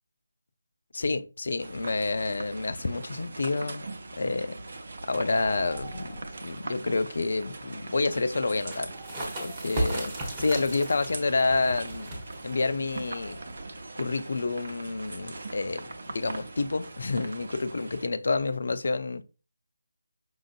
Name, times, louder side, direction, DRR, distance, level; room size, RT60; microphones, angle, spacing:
voice 1, 0.9-3.9 4.2-4.5 5.1-8.9 9.4-12.1 12.4-13.4 14.0-19.2, left 3 dB, 55° left, 0.4 m, -29 dB
sound 1, 1.6-18.1, right 2 dB, 50° right, 0.6 m, -41 dB
sound 2, 5.2-6.6 8.8-10.2 12.9-14.1, right 2 dB, ahead, 1.1 m, -47 dB
sound 3, 8.5-13.8, right 1 dB, 20° right, 1.1 m, -36 dB
5.5 x 2.5 x 2.5 m
figure-of-eight pair, 155°, 0 cm